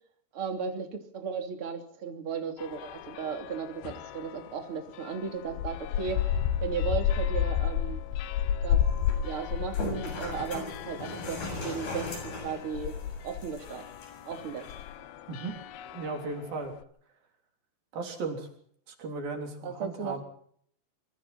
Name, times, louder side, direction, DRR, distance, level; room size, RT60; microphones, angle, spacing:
voice 1, 0.3-6.3 6.6-8.0 8.6-8.8 9.2-12.9 13.2-13.8 14.2-14.7 19.6-20.2, right 6 dB, 35° right, 3 dB, 3.4 m, -35 dB
sound 1, 2.6-4.5 5.0-16.5, left 9 dB, 70° left, 2.6 m, -32 dB
sound 2, 8.8-14.8, left 2 dB, 55° left, 8.7 m, -40 dB
voice 2, 15.3-15.6 15.9-16.7 17.9-18.5 18.9-20.2, right 3 dB, 55° right, 3 dB, 5.1 m, -36 dB
26.5 x 25.0 x 4.3 m, 0.64 s
omnidirectional pair, 5.0 m